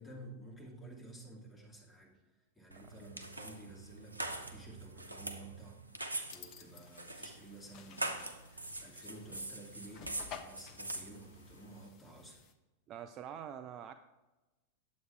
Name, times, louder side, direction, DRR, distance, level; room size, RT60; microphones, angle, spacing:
voice 1, 0.0-2.2 2.5-5.8 6.3-12.4, right 1 dB, 5° left, -3 dB, 2.4 m, -53 dB
sound 1, 2.7-11.9, right 2 dB, 85° right, 0.7 m, -44 dB
sound 2, 6.3-12.5, left 7 dB, 40° left, 0.8 m, -54 dB
voice 2, 12.9-13.9, right 9 dB, 35° right, 8 dB, 0.4 m, -45 dB
9.5 x 7.8 x 3.4 m, 1.1 s
figure-of-eight pair, 90°, 0 cm